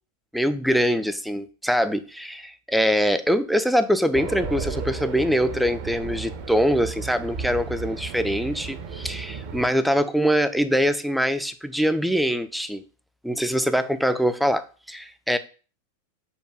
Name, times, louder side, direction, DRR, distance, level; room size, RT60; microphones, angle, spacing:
voice 1, 0.3-12.8 13.2-15.4, equal, ahead, 11 dB, 0.3 m, -23 dB
Race car auto racing, 4.1-9.7, right 5 dB, 40° right, 0.6 m, -33 dB
4.6 x 2.2 x 4.8 m, 0.37 s
figure-of-eight pair, 90°, 0 cm